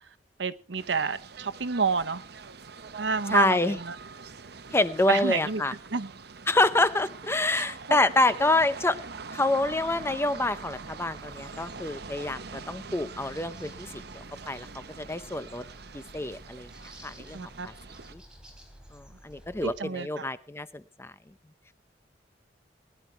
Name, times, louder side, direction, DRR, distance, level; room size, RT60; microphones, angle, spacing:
voice 1, 0.4-2.2 2.9-3.9 5.1-5.6 5.9-6.1 7.9-8.0 17.3-17.7 19.6-20.3, right 5 dB, 85° right, 0.9 m, -29 dB
sound 1, 0.8-18.1, right 4 dB, 65° right, 1.0 m, -44 dB
voice 2, 3.3-3.8 4.7-5.7 6.5-9.0 9.3-14.7 15.0-15.6 15.9-16.7 17.0-17.5 18.1-18.2 18.9-21.1, left 2 dB, 15° left, 0.7 m, -27 dB
sound 2, 9.6-19.8, equal, 5° right, 3.7 m, -52 dB
20.0 x 11.0 x 4.5 m
head